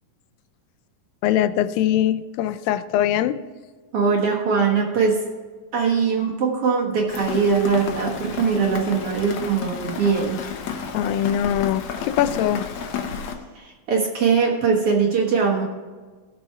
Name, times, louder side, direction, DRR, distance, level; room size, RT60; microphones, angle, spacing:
voice 1, 1.2-3.4 10.9-12.7, left 11 dB, 85° left, 12 dB, 2.3 m, -22 dB
voice 2, 3.9-5.2 5.7-10.4 13.6-15.6, right 5 dB, 50° right, -1 dB, 2.0 m, -21 dB
Rain, 7.1-13.3, left 6 dB, 65° left, 2.0 m, -32 dB
16.5 x 6.1 x 4.6 m, 1.4 s
omnidirectional pair, 4.0 m